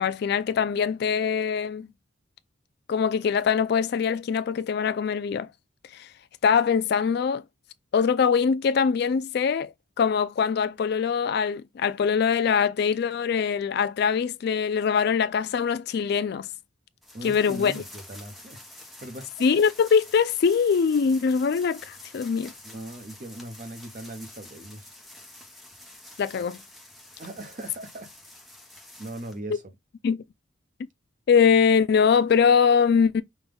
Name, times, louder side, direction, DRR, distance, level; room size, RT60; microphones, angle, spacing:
voice 1, 0.0-1.9 2.9-5.5 5.9-6.1 6.4-7.4 7.9-16.5 17.2-17.7 19.4-22.5 26.2-26.6 30.0-30.2 31.3-33.2, left 6 dB, 55° left, 0.3 m, -23 dB
Metallic grille being moved, 17.0-29.4, left 1 dB, ahead, 0.7 m, -48 dB
voice 2, 17.1-18.6 19.0-19.3 22.6-24.9 27.2-28.1 29.0-29.6, right 1 dB, 40° right, 0.8 m, -39 dB
5.4 x 2.3 x 3.4 m
head